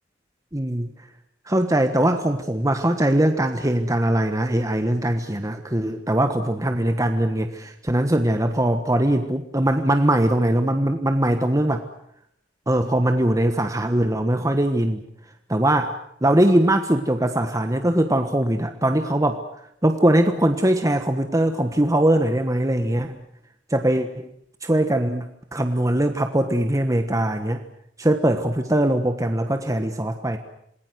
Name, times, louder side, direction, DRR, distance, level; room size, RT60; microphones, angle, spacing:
voice 1, 0.5-0.9 1.5-11.8 12.7-15.0 15.5-19.4 19.8-23.2 23.7-24.3 24.6-25.3 25.5-27.6 28.0-30.4, right 1 dB, 15° right, 7 dB, 1.4 m, -21 dB
28.0 x 20.5 x 8.0 m, 0.71 s
head